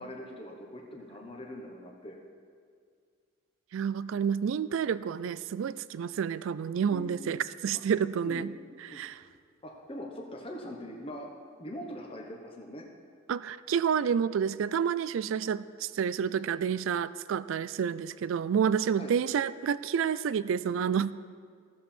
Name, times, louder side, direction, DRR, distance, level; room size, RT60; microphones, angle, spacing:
voice 1, 0.0-2.2 6.9-7.3 7.7-7.8 8.2-8.5 8.9-9.0 9.6-11.3 11.6-12.9 19.0-19.1, equal, 25° left, 0 dB, 1.0 m, -42 dB
voice 2, 3.7-8.5 8.9-9.2 13.3-21.1, right 7 dB, 70° right, 17 dB, 0.3 m, -29 dB
15.0 x 7.2 x 4.4 m, 2.1 s
head